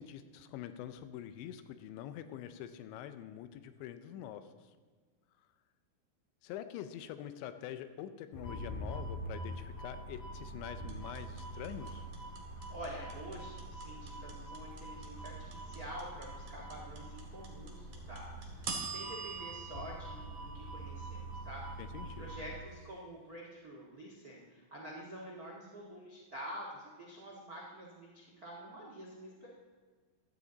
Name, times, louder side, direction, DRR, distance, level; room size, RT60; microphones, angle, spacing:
voice 1, 0.0-4.5 6.4-12.1 21.8-22.3, left 10 dB, 80° left, 10 dB, 3.0 m, -45 dB
sound 1, 8.3-22.6, right 1 dB, 50° left, 3.0 m, -45 dB
sound 2, 10.9-21.1, right 5 dB, 50° right, 2.5 m, -44 dB
voice 2, 12.7-29.5, equal, 70° right, -3 dB, 0.8 m, -48 dB
15.5 x 12.5 x 4.0 m, 1.5 s
omnidirectional pair, 5.3 m